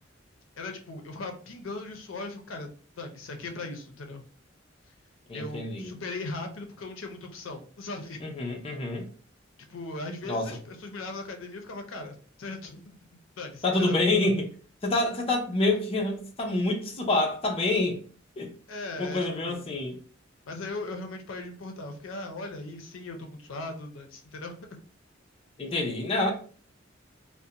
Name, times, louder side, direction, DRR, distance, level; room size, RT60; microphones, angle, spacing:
voice 1, 0.6-2.7 3.0-4.2 5.3-8.2 9.7-13.0 13.4-14.0 18.7-19.7 20.4-24.8, left 2 dB, 80° left, 0.5 m, -38 dB
voice 2, 5.3-5.9 8.2-9.0 10.2-10.5 13.6-14.5 14.8-18.0 18.4-18.5 19.0-20.0 25.6-26.3, left 2 dB, 30° left, 0.5 m, -27 dB
2.4 x 2.1 x 2.7 m
head